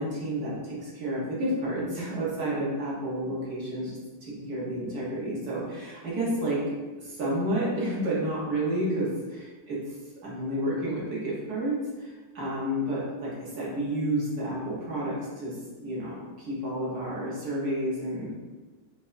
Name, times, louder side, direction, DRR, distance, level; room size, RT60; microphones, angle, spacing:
voice 1, 0.0-6.6 7.0-10.0 10.2-18.3, right 1 dB, 50° right, -7 dB, 1.5 m, -30 dB
5.3 x 2.6 x 2.6 m, 1.3 s
omnidirectional pair, 2.3 m